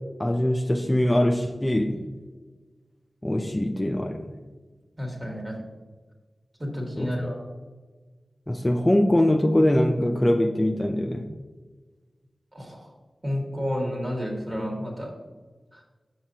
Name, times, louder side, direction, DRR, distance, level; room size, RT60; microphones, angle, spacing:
voice 1, 0.2-2.0 3.2-4.3 7.0-7.1 8.5-11.3, left 1 dB, 20° left, 4 dB, 0.4 m, -22 dB
voice 2, 5.0-5.6 6.6-7.4 12.5-12.9 13.2-15.1 15.7-15.8, equal, 30° right, -1 dB, 1.8 m, -30 dB
6.9 x 5.8 x 2.7 m, 1.3 s
cardioid pair, 40°, 0 cm